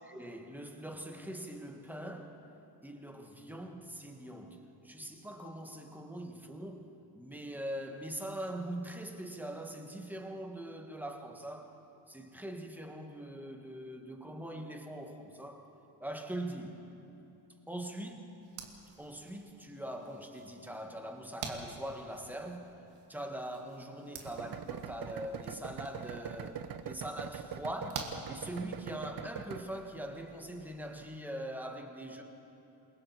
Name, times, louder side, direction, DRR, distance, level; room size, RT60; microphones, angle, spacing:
voice 1, 0.1-2.4 2.8-11.8 12.1-15.7 16.0-16.8 17.7-18.2 19.0-22.8 23.1-32.2, right 1 dB, 5° right, 1.5 m, -42 dB
sound 1, 18.4-29.0, right 5 dB, 90° right, 2.3 m, -49 dB
sound 2, 24.2-31.2, right 8 dB, 45° right, 0.8 m, -43 dB
27.5 x 22.0 x 4.6 m
cardioid pair, 135°, 49 cm